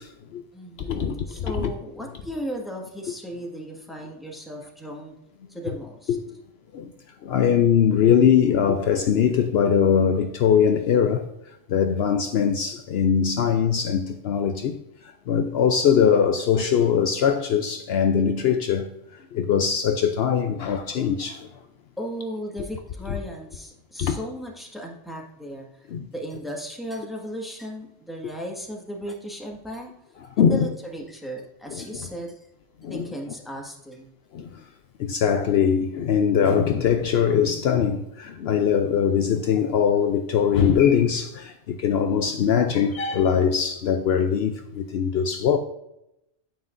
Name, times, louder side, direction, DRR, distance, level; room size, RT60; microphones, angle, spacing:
voice 1, 0.0-0.4 0.9-1.7 6.1-6.2 6.7-6.9 7.2-11.3 11.7-14.8 15.0-18.9 19.3-21.5 24.0-24.2 25.9-26.1 30.4-30.7 31.7-31.8 32.8-33.0 34.3-34.5 35.0-45.6, left 7 dB, 65° left, 0.8 m, -21 dB
voice 2, 0.5-5.1 5.5-6.2 22.0-29.9 30.4-32.3 32.8-34.1, equal, ahead, 1.6 m, -36 dB
9.3 x 8.8 x 2.6 m
omnidirectional pair, 1.2 m